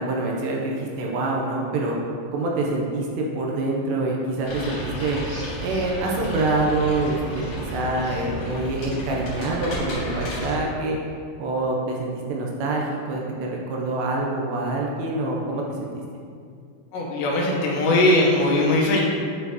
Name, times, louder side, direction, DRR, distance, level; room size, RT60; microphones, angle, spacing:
voice 1, 0.0-2.0 2.3-5.2 5.6-11.0 11.4-16.0, right 2 dB, 80° right, -2 dB, 2.8 m, -26 dB
sound 1, 4.4-10.5, left 1 dB, 55° left, 2.9 m, -37 dB
sound 2, 4.4-10.6, right 1 dB, 55° right, 3.0 m, -33 dB
voice 2, 16.9-19.0, left 1 dB, 80° left, -3 dB, 3.1 m, -20 dB
10.0 x 4.3 x 2.9 m, 2.2 s
omnidirectional pair, 5.2 m